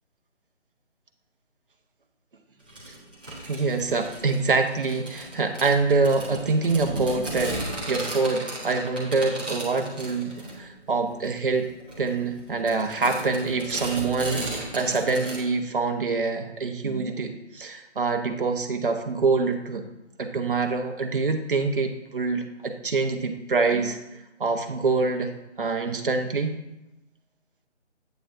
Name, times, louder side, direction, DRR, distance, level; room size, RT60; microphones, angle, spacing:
sound 1, 2.7-15.4, right 1 dB, 10° right, 0.7 m, -36 dB
voice 1, 3.4-7.6 7.9-11.7 12.0-19.8 20.2-24.0 24.4-25.3 25.6-26.6, right 4 dB, 45° right, 5 dB, 1.0 m, -25 dB
9.4 x 9.1 x 2.7 m, 0.93 s
figure-of-eight pair, 155°, 36 cm